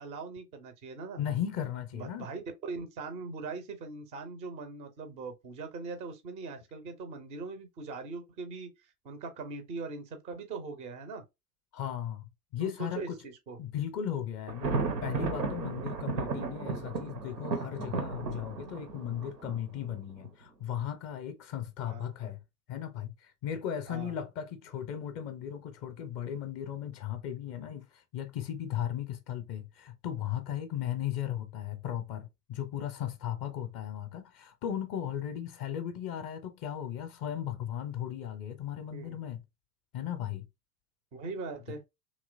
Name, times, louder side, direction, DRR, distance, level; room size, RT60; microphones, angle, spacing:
voice 1, 0.0-1.2 1.9-8.7 9.0-11.2 12.6-13.6 21.9-22.1 23.9-24.1 38.9-39.2 41.1-41.8, right 4 dB, 15° right, 0.3 m, -41 dB
voice 2, 1.2-2.3 11.7-12.3 12.5-13.2 13.6-22.4 22.7-39.4 39.9-40.4, left 10 dB, 30° left, 0.6 m, -36 dB
Thunder, 14.5-20.3, right 4 dB, 90° right, 0.7 m, -34 dB
2.9 x 2.9 x 2.3 m
figure-of-eight pair, 90°, 48 cm